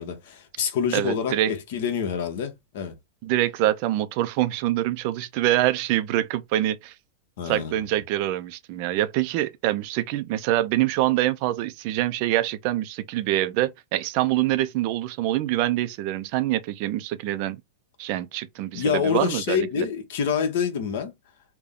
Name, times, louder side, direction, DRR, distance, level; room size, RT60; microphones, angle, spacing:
voice 1, 0.0-3.0 7.4-7.8 18.7-21.1, left 7 dB, 60° left, 1.1 m, -27 dB
voice 2, 0.9-1.5 3.2-6.9 7.4-17.6 18.0-19.9, right 14 dB, 45° right, 0.5 m, -25 dB
3.5 x 2.2 x 3.7 m
supercardioid pair, 155°, 0 cm